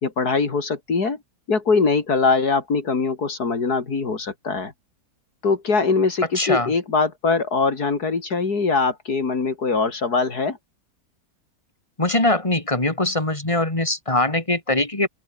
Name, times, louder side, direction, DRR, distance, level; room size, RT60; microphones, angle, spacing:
voice 1, 0.0-1.2 1.5-4.7 5.4-10.6, left 4 dB, 80° left, 3.4 m, -22 dB
voice 2, 6.3-6.7 12.0-15.1, left 2 dB, 20° left, 3.1 m, -22 dB
open air
omnidirectional pair, 1.6 m